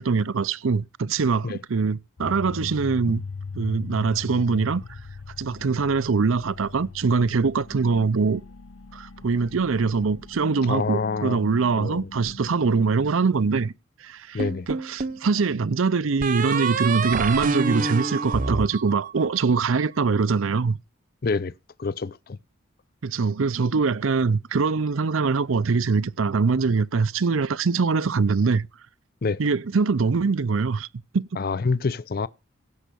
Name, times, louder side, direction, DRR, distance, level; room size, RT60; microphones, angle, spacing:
voice 1, 0.0-3.2 3.5-5.0 5.4-8.4 8.9-13.7 14.0-20.8 23.0-28.7 29.4-30.9 31.1-31.3, right 4 dB, 70° right, 0.6 m, -23 dB
sound 1, 2.2-13.1, left 4 dB, 75° left, 0.9 m, -40 dB
voice 2, 10.7-11.4 11.7-12.1 14.3-14.7 21.2-21.5 21.8-22.4 29.2-29.4 31.4-32.3, left 4 dB, 45° left, 0.5 m, -27 dB
sound 2, 14.4-15.2 16.2-19.5, right 4 dB, 40° right, 0.9 m, -27 dB
16.5 x 5.6 x 6.8 m
head